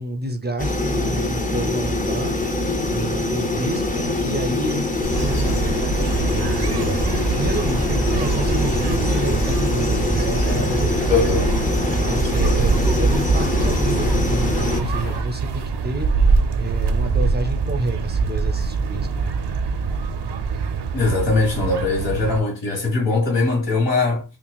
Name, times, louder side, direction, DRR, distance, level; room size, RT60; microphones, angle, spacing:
voice 1, 0.0-5.7 6.3-11.1 11.9-16.1 16.6-19.3, right 1 dB, 25° right, 0.5 m, -29 dB
sound 1, 0.6-14.8, left 2 dB, 20° left, 0.6 m, -24 dB
sound 2, 5.0-15.2, left 2 dB, 60° left, 0.8 m, -28 dB
sound 3, 5.1-22.4, right 4 dB, 70° right, 0.6 m, -24 dB
voice 2, 11.1-11.5 20.9-24.2, left 3 dB, 80° left, 1.7 m, -21 dB
5.7 x 2.4 x 2.3 m
wide cardioid pair, 95°, 43 cm